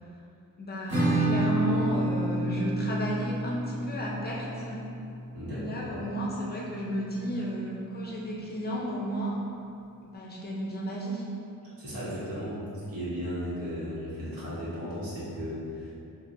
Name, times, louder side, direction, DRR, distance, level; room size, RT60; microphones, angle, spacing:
voice 1, 0.6-4.9 5.5-9.4 10.0-11.3, equal, 30° left, -4 dB, 0.4 m, -33 dB
Acoustic guitar / Strum, 0.9-6.3, right 1 dB, 45° right, 1.3 m, -30 dB
voice 2, 5.3-5.7 11.8-15.9, equal, 75° right, -10 dB, 1.3 m, -35 dB
4.2 x 2.5 x 2.5 m, 2.6 s
wide cardioid pair, 135°, 34 cm